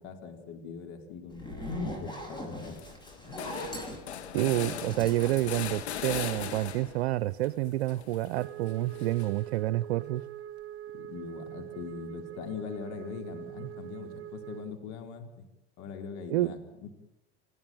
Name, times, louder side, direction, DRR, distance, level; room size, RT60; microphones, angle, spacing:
voice 1, 0.0-2.8 10.9-15.5 15.8-16.9, left 6 dB, 55° left, 4 dB, 4.3 m, -42 dB
Zipper (clothing), 1.3-6.6, left 1 dB, 15° left, 7.5 m, -40 dB
sound 1, 1.4-1.9 2.3-2.4 2.6-7.1 7.4-9.6, left 9 dB, 90° left, 2.4 m, -40 dB
voice 2, 4.3-10.2 13.6-13.7 16.3-16.5, right 16 dB, 75° right, 17 dB, 0.8 m, -28 dB
Wind instrument woodwind instrument, 8.3-14.8, right 11 dB, 45° right, 1.5 m, -43 dB
27.0 x 16.5 x 9.0 m, 0.90 s
hypercardioid pair, 95°, 32 cm